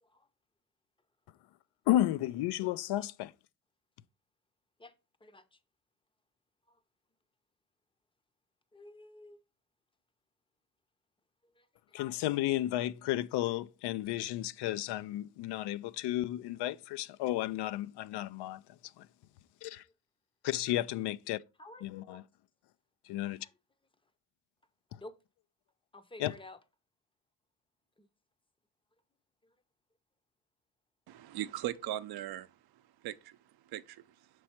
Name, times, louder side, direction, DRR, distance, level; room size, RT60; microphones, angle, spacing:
voice 1, 1.9-3.3 11.9-18.6 19.0-19.1 19.6-19.8 20.4-21.4 21.8-22.2 23.1-23.5 26.2-26.3, left 14 dB, 75° left, 0.5 m, -33 dB
voice 2, 5.2-5.6 6.7-6.8 8.7-9.4 11.4-12.0 21.6-22.2 23.4-23.5 25.0-25.2 25.9-26.6 28.0-28.1 29.4-29.5, left 2 dB, 15° left, 0.6 m, -52 dB
voice 3, 31.1-32.5 33.0-33.4 33.7-34.0, right 13 dB, 65° right, 0.6 m, -38 dB
6.2 x 4.6 x 4.3 m
cardioid pair, 100°, 41 cm